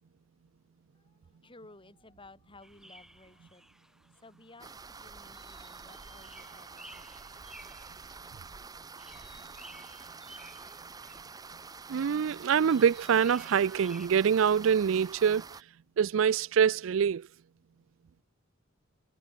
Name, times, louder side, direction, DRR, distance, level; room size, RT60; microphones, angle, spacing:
voice 1, 0.9-7.2, left 2 dB, 25° left, 4.2 m, -56 dB
sound 1, 2.6-14.1, equal, ahead, 5.7 m, -55 dB
sound 2, 4.6-15.6, right 4 dB, 20° right, 0.6 m, -47 dB
voice 2, 11.9-15.4 16.0-17.3, right 7 dB, 70° right, 0.4 m, -25 dB
head